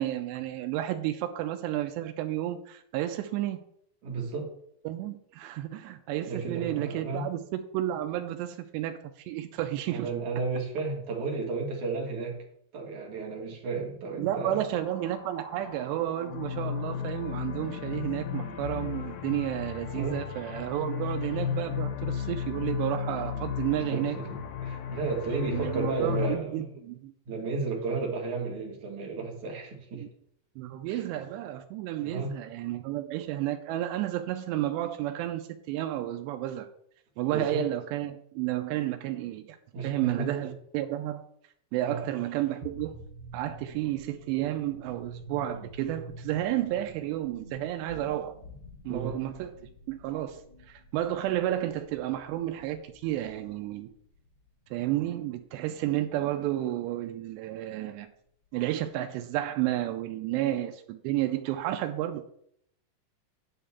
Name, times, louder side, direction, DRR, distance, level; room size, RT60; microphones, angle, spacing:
voice 1, 0.0-3.6 4.9-10.1 14.2-24.2 25.5-27.1 29.9-30.1 30.6-36.7 37.2-39.6 39.8-41.2 41.7-43.0 43.3-48.4 48.8-49.6 49.9-50.4 50.7-53.9 54.7-58.1 58.5-62.2, right 13 dB, 85° right, 7 dB, 2.7 m, -31 dB
voice 2, 4.0-4.5 6.3-7.3 9.9-12.4 12.7-14.6 19.9-20.2 23.9-26.7 27.3-30.0 30.9-31.0 32.0-32.4 37.3-37.7 39.7-40.5 41.8-42.0 48.9-49.2 60.3-60.4, right 4 dB, 60° right, 0 dB, 2.3 m, -33 dB
sound 1, 14.7-26.4, left 8 dB, 85° left, 2.1 m, -35 dB
sound 2, 42.6-53.9, equal, 55° left, 0.5 m, -48 dB
9.4 x 3.6 x 6.9 m, 0.69 s
omnidirectional pair, 4.9 m